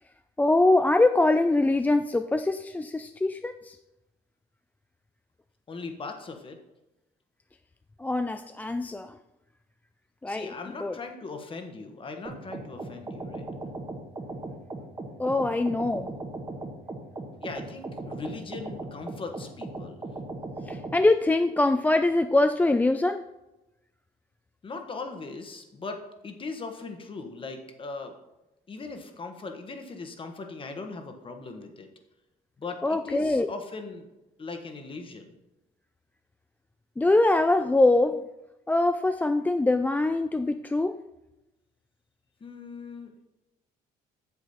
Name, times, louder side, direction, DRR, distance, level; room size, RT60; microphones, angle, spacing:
voice 1, 0.4-3.8 8.0-9.2 10.2-10.5 10.8-11.0 15.2-16.1 20.7-23.3 32.8-33.5 37.0-38.3 38.7-41.0, left 2 dB, 10° left, 8 dB, 0.3 m, -23 dB
voice 2, 5.7-6.6 10.3-13.5 17.4-20.0 24.6-28.1 28.7-31.9 32.6-34.1 34.4-35.3 42.4-43.2, left 3 dB, 30° left, 5 dB, 1.4 m, -39 dB
sound 1, 12.2-21.0, right 2 dB, 20° right, 1.3 m, -38 dB
8.3 x 7.2 x 4.3 m, 0.96 s
cardioid pair, 110°, 17 cm